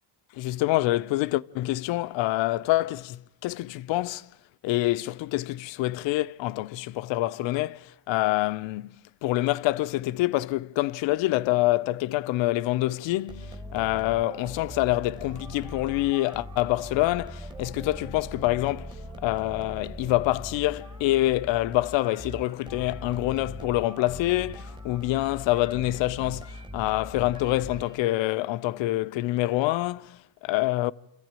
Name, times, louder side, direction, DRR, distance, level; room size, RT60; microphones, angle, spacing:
voice 1, 0.3-4.3 4.6-8.9 9.2-18.9 19.2-30.9, left 17 dB, 75° left, 0.7 m, -26 dB
sound 1, 13.3-28.2, equal, 10° right, 1.0 m, -41 dB
27.0 x 14.5 x 8.9 m
cardioid pair, 150°, 46 cm